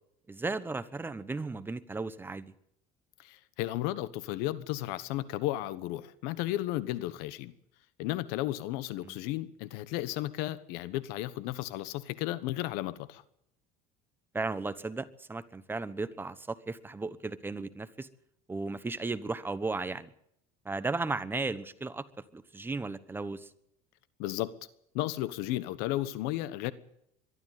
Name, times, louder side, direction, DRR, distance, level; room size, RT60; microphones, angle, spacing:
voice 1, 0.3-2.5 9.0-9.1 14.3-18.1 18.5-20.1 20.6-22.0 22.3-23.5, right 3 dB, 15° right, 1.0 m, -35 dB
voice 2, 3.2-7.5 8.0-13.2 24.2-24.6 24.9-26.7, left 15 dB, 75° left, 1.2 m, -34 dB
22.0 x 12.5 x 9.3 m
cardioid pair, 130°, 16 cm